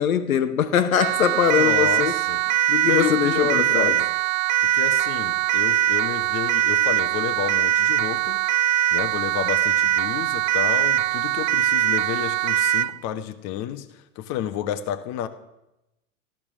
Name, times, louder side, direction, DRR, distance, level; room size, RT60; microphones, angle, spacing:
voice 1, 0.0-2.1 2.7-3.9, left 8 dB, 75° left, 1.4 m, -22 dB
Siren, 1.0-13.0, right 13 dB, 70° right, 0.5 m, -22 dB
voice 2, 1.5-2.4 2.8-4.1 4.6-8.4 8.9-15.3, left 10 dB, 40° left, 1.2 m, -30 dB
14.0 x 12.0 x 6.0 m
hypercardioid pair, 100°, 42 cm